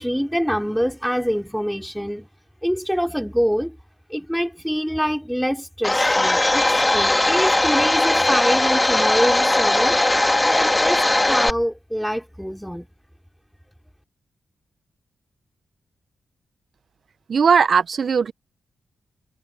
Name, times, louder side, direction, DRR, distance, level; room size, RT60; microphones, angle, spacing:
voice 1, 0.0-2.3 2.6-3.8 4.1-10.0 10.4-12.9, equal, ahead, 4.0 m, -25 dB
Domestic sounds home sounds, 5.8-11.5, left 2 dB, 20° left, 2.4 m, -19 dB
voice 2, 17.3-18.3, right 6 dB, 60° right, 0.6 m, -18 dB
supercardioid pair, 50°, 0 cm